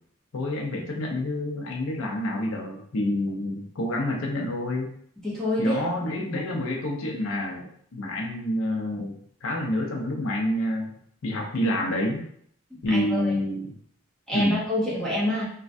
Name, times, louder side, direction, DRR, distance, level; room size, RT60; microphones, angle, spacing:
voice 1, 0.3-4.9 5.6-9.1 9.4-12.2 12.8-13.7 14.3-14.6, left 1 dB, 75° left, 0 dB, 0.6 m, -28 dB
voice 2, 5.2-5.9 12.9-13.3 14.3-15.5, left 1 dB, 5° left, -7 dB, 0.7 m, -26 dB
3.1 x 2.3 x 2.5 m, 0.65 s
head